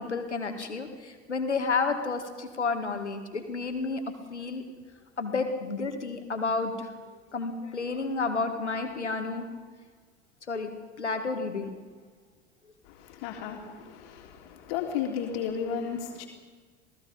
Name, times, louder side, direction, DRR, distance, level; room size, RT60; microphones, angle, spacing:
voice 1, 0.0-4.0 4.3-4.6 5.2-6.9 7.3-9.5 10.5-11.7, left 4 dB, 80° left, 6 dB, 2.1 m, -31 dB
voice 2, 12.8-16.2, left 7 dB, 55° left, 2 dB, 3.3 m, -34 dB
27.5 x 18.0 x 5.3 m, 1.5 s
figure-of-eight pair, 70°, 34 cm